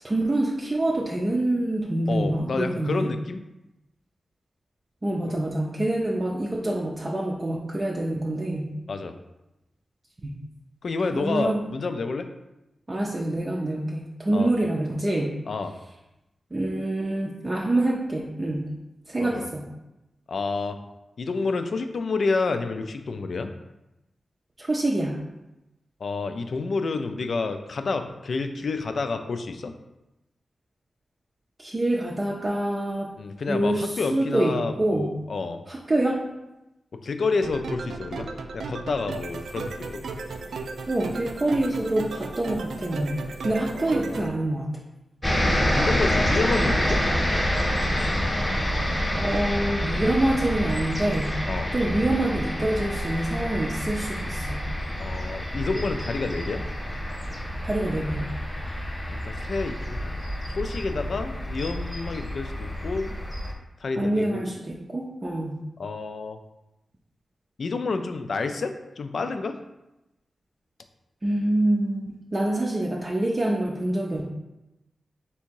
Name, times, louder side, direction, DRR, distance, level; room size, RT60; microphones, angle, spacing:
voice 1, 0.0-3.1 5.0-8.7 10.2-10.4 11.1-11.7 12.9-15.4 16.5-18.7 19.1-19.6 24.6-25.2 31.6-33.1 33.5-35.2 35.7-36.2 40.9-44.7 49.1-51.4 51.7-54.6 57.6-58.3 63.9-65.6 71.2-74.3, right 1 dB, 30° right, -2 dB, 0.5 m, -26 dB
voice 2, 2.1-3.4 8.9-9.1 10.8-12.3 14.3-14.5 15.5-15.7 19.2-19.5 20.3-20.8 21.2-23.5 26.0-29.7 33.2-35.6 37.0-38.3 38.5-40.0 43.7-44.3 45.7-47.0 51.5-51.7 55.0-56.6 59.1-63.1 63.8-64.5 65.8-66.4 67.6-69.6, left 4 dB, 65° left, 7 dB, 0.4 m, -29 dB
sound 1, 37.4-44.3, right 3 dB, 90° right, 0.3 m, -35 dB
sound 2, 45.2-63.5, equal, 15° left, 0.9 m, -27 dB
3.5 x 2.8 x 4.5 m, 0.95 s
wide cardioid pair, 85°, 0 cm